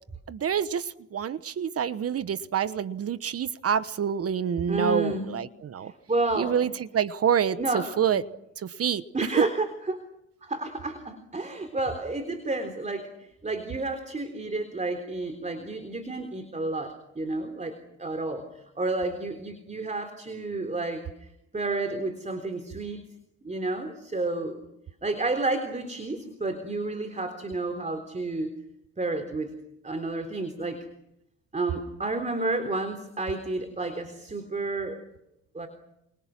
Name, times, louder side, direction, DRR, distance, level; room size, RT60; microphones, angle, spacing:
voice 1, 0.3-5.9 6.4-8.2 8.6-9.0, right 8 dB, 50° right, 14 dB, 1.1 m, -27 dB
voice 2, 4.7-5.4 5.8-6.7 7.6-8.2 9.1-10.0 10.4-23.0 23.4-24.6 25.0-28.5 29.0-29.5 29.8-30.8 31.5-35.0 35.5-35.7, right 2 dB, 25° right, 7 dB, 3.7 m, -31 dB
29.5 x 27.5 x 6.1 m, 0.85 s
cardioid pair, 90°, 30 cm